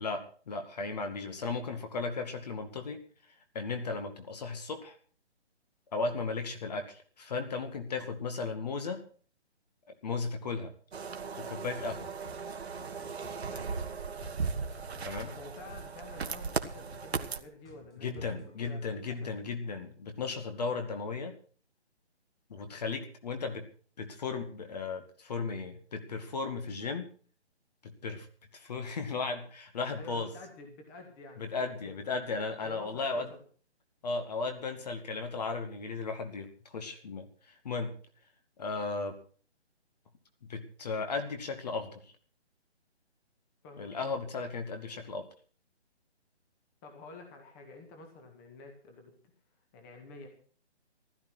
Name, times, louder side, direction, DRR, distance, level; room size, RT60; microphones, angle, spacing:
voice 1, 0.0-3.0 3.5-4.9 5.9-9.0 10.0-10.7 11.4-12.1 15.0-15.3 18.0-21.4 22.5-23.7 24.0-27.1 27.8-28.3 28.5-30.3 31.4-33.3 34.0-36.5 36.7-37.3 37.6-38.0 38.6-39.2 40.5-42.0 43.8-45.3, left 4 dB, 35° left, 7 dB, 2.1 m, -35 dB
sound 1, 10.9-17.4, right 5 dB, 65° right, 1.6 m, -37 dB
sound 2, 11.5-18.7, left 2 dB, 85° left, 7.5 m, -54 dB
voice 2, 15.3-18.2 18.6-18.8 19.1-19.5 30.0-32.0 32.6-33.4 43.6-44.2 46.8-49.1 49.7-50.3, left 2 dB, 15° left, 4 dB, 1.9 m, -49 dB
16.0 x 12.0 x 6.2 m, 0.43 s
hypercardioid pair, 160°, 34 cm